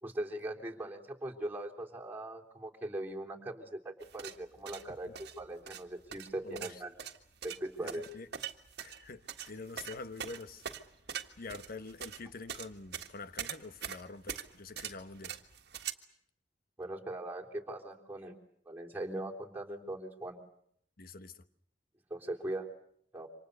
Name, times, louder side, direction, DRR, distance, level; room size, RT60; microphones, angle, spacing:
voice 1, 0.0-6.9 7.4-8.1 16.8-18.3 18.7-20.4 22.1-22.7 23.1-23.3, right 1 dB, 10° right, 3.4 m, -40 dB
sound 1, 4.0-15.9, right 9 dB, 65° right, 1.6 m, -43 dB
voice 2, 6.4-6.8 7.8-8.3 8.8-10.6 11.4-15.4 21.0-21.4, left 3 dB, 55° left, 1.1 m, -46 dB
28.0 x 26.0 x 6.7 m
head